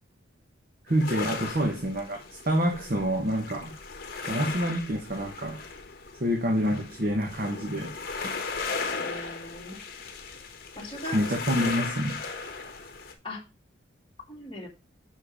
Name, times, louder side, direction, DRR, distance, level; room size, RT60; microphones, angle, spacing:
sound 1, 0.9-13.1, left 4 dB, 50° left, 1.1 m, -37 dB
voice 1, 0.9-3.7 4.2-5.6 6.2-7.9 11.1-12.2, equal, 45° right, 2 dB, 1.0 m, -27 dB
voice 2, 9.0-9.8 10.7-11.2 13.2-13.4 14.3-14.7, left 1 dB, 25° left, -1 dB, 1.6 m, -39 dB
5.9 x 5.0 x 4.9 m, 0.29 s
head